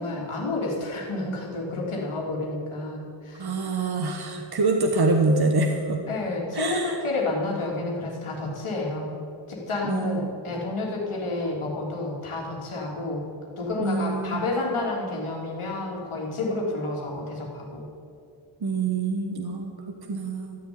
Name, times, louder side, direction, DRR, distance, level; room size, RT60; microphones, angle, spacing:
voice 1, 0.0-3.5 6.1-9.1 9.5-13.3 13.6-17.9, left 2 dB, 80° left, -3 dB, 3.3 m, -30 dB
voice 2, 3.4-6.0 6.5-7.0 9.9-10.3 13.8-14.4 18.6-20.6, right 3 dB, 50° right, 3 dB, 1.4 m, -25 dB
13.5 x 7.1 x 9.7 m, 2.5 s
cardioid pair, 45°, 49 cm